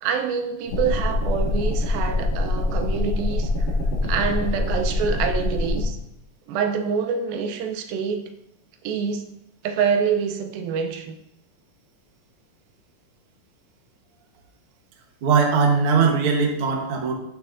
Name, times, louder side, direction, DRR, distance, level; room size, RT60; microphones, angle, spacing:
voice 1, 0.0-3.5 4.0-6.0 6.5-8.3 8.8-9.4 9.6-11.2, right 6 dB, 85° right, 6 dB, 2.4 m, -26 dB
sound 1, 0.7-5.8, left 2 dB, 70° left, 3.1 m, -24 dB
voice 2, 15.2-17.1, right 5 dB, 60° right, 1 dB, 1.4 m, -20 dB
10.0 x 6.4 x 2.6 m, 0.81 s
omnidirectional pair, 4.1 m